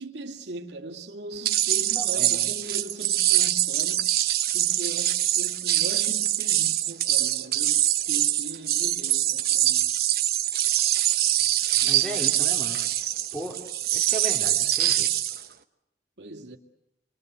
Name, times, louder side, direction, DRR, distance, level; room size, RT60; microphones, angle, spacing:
voice 1, 0.0-4.1 4.5-9.9 11.7-11.9 16.2-16.6, right 2 dB, 85° right, 2.3 m, -39 dB
sound 1, 1.4-15.4, right 13 dB, 55° right, 1.2 m, -24 dB
voice 2, 2.0-2.5 11.8-12.8 13.3-13.6 13.9-15.1, right 1 dB, 5° left, 3.8 m, -36 dB
27.5 x 24.5 x 8.2 m
head